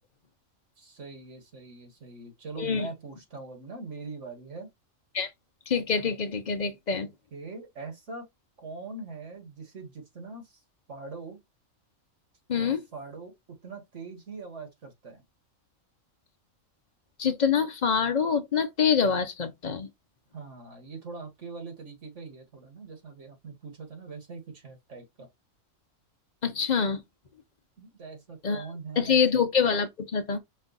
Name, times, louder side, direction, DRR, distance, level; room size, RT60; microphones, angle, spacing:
voice 1, 0.8-4.7 6.9-8.3 8.6-10.6 10.9-11.4 12.5-13.3 13.6-15.2 20.3-25.3 27.8-29.2, right 4 dB, 65° right, 2.0 m, -42 dB
voice 2, 5.7-7.1 12.5-12.8 17.2-19.9 26.4-27.0 28.4-28.6 29.0-30.4, left 6 dB, 45° left, 0.6 m, -25 dB
5.3 x 2.4 x 4.0 m
omnidirectional pair, 1.4 m